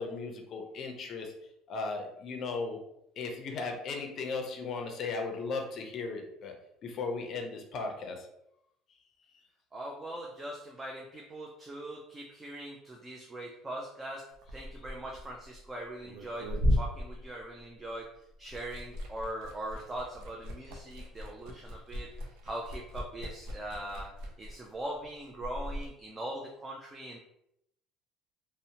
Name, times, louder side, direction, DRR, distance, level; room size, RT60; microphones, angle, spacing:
voice 1, 0.0-1.3 1.7-2.8 3.2-6.5 6.8-8.3, left 4 dB, 45° left, 3 dB, 0.5 m, -36 dB
voice 2, 9.7-18.1 18.4-22.1 22.4-24.1 24.4-27.2, right 1 dB, 15° right, 0 dB, 0.3 m, -41 dB
Liquid, 14.3-18.0 18.3-25.9, equal, 75° right, 0.5 m, -36 dB
2.7 x 2.0 x 2.7 m, 0.78 s
cardioid pair, 145°, 0 cm